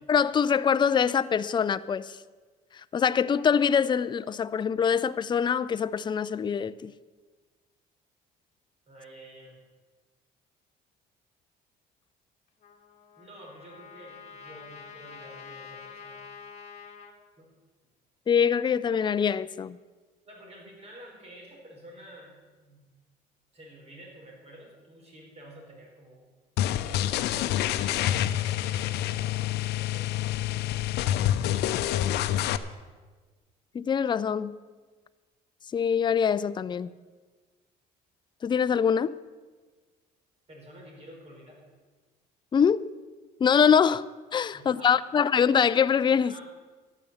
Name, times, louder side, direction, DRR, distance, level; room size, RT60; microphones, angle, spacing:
voice 1, 0.1-2.2 2.7-6.9 18.3-19.8 33.7-34.6 35.7-36.9 38.4-39.1 42.5-42.8 43.4-46.3, left 7 dB, 25° left, 0.4 m, -24 dB
voice 2, 8.9-9.6 13.2-16.2 17.4-17.5 20.2-22.9 23.5-26.3 26.6-31.5 40.5-41.6 44.5-45.0 46.3-46.4, right 1 dB, 40° right, 5.1 m, -50 dB
Trumpet, 12.6-17.1, left 6 dB, 45° left, 1.9 m, -47 dB
sound 1, 26.6-32.6, left 12 dB, 80° left, 0.6 m, -27 dB
12.5 x 9.1 x 7.1 m
cardioid pair, 110°, 17 cm